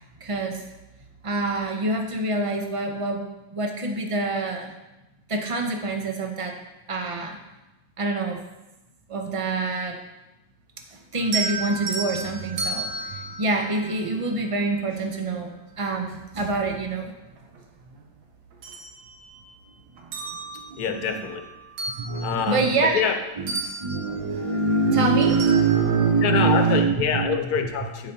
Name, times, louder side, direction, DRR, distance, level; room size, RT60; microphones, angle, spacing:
voice 1, 0.2-0.6 1.2-3.2 3.5-4.7 5.3-6.6 6.9-7.4 8.0-8.4 9.1-10.0 10.9-17.1 20.0-20.2 20.5-21.0 22.0-23.0 23.4-23.5 23.8-27.7, right 3 dB, 55° right, 3 dB, 0.3 m, -25 dB
sound 1, 11.2-14.5 16.2-16.3 16.8-18.0 18.4-19.6 20.0-23.2 23.5-26.1, right 3 dB, 80° right, 1.5 m, -34 dB
voice 2, 20.8-21.5 22.2-23.2 26.2-28.1, left 7 dB, 70° left, 6 dB, 1.3 m, -26 dB
14.5 x 4.9 x 2.7 m, 1.0 s
omnidirectional pair, 1.7 m